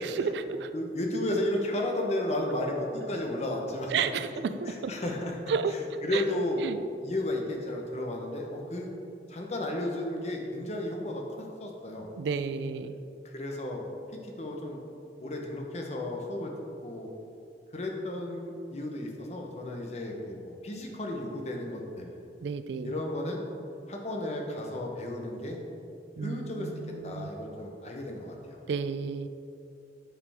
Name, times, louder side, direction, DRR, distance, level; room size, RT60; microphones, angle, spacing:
voice 1, 0.0-0.7 3.9-5.0 5.5-5.7 6.1-6.2 6.6-6.8 12.2-13.0 22.4-22.9 26.2-27.3 28.7-29.3, right 5 dB, 75° right, 11 dB, 0.3 m, -32 dB
voice 2, 0.7-3.9 4.7-5.4 6.0-6.6 7.0-8.9 9.3-12.1 13.2-13.8 14.2-14.8 15.2-16.5 16.8-17.1 17.7-22.1 22.8-23.4 23.9-25.6 26.2-26.7 27.0-28.6, left 1 dB, 40° left, 1 dB, 0.8 m, -33 dB
8.8 x 4.9 x 3.5 m, 2.6 s
head